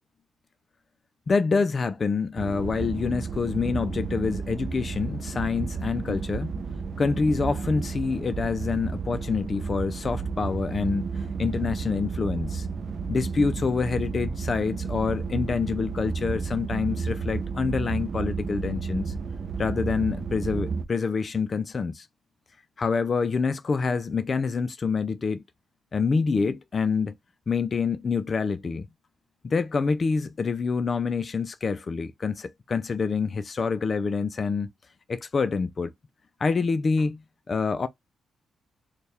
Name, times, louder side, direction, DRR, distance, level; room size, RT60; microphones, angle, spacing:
voice 1, 1.3-6.6 7.0-12.7 13.1-19.1 19.6-22.1 22.8-25.4 25.9-27.1 27.5-28.9 29.4-34.7 35.1-35.9 36.4-37.2 37.5-37.9, left 5 dB, 30° left, 0.3 m, -26 dB
sound 1, 2.4-20.9, right 5 dB, 40° right, 0.5 m, -32 dB
4.3 x 2.2 x 3.3 m
wide cardioid pair, 155°, 0 cm